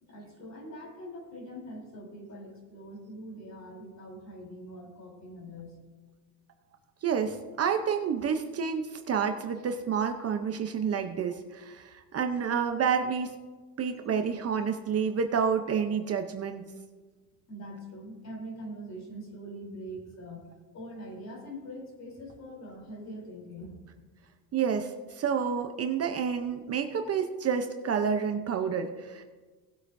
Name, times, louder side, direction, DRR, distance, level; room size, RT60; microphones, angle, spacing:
voice 1, 0.0-5.8 17.5-20.5 20.7-23.8, equal, 40° left, -1 dB, 3.5 m, -43 dB
voice 2, 7.0-13.3 13.8-16.7 24.5-29.2, right 6 dB, 35° right, 6 dB, 0.7 m, -29 dB
18.5 x 8.0 x 2.6 m, 1.4 s
cardioid pair, 135°, 41 cm